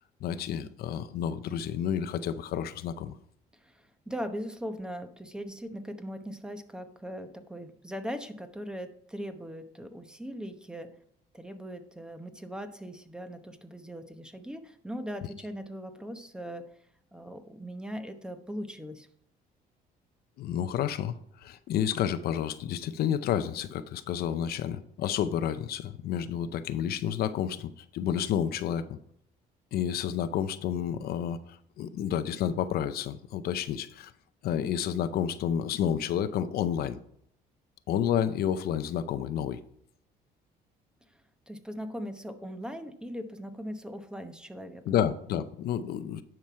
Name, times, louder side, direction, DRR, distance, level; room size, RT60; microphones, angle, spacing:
voice 1, 0.2-3.1 20.4-21.1 21.4-29.0 29.7-34.1 34.4-37.0 37.9-39.6 44.9-46.2, left 9 dB, 65° left, 12 dB, 0.6 m, -30 dB
voice 2, 3.6-11.0 11.3-16.7 17.1-19.1 41.5-44.9, equal, 5° right, 8 dB, 0.9 m, -40 dB
10.5 x 6.0 x 4.6 m, 0.69 s
cardioid pair, 110°, 17 cm